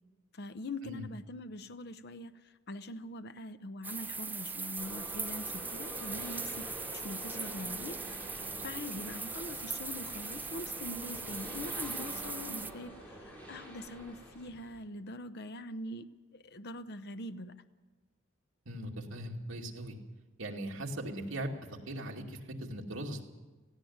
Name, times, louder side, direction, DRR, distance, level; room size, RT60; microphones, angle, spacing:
voice 1, 0.3-8.0 8.6-17.6, left 1 dB, 55° left, 10 dB, 0.8 m, -43 dB
sound 1, 3.8-12.7, right 4 dB, 10° right, 0.6 m, -40 dB
sound 2, 4.8-14.8, right 1 dB, 5° left, 5.7 m, -47 dB
voice 2, 18.7-20.0 20.4-23.2, right 1 dB, 75° right, 0 dB, 2.5 m, -39 dB
17.5 x 16.0 x 9.4 m, 1.3 s
head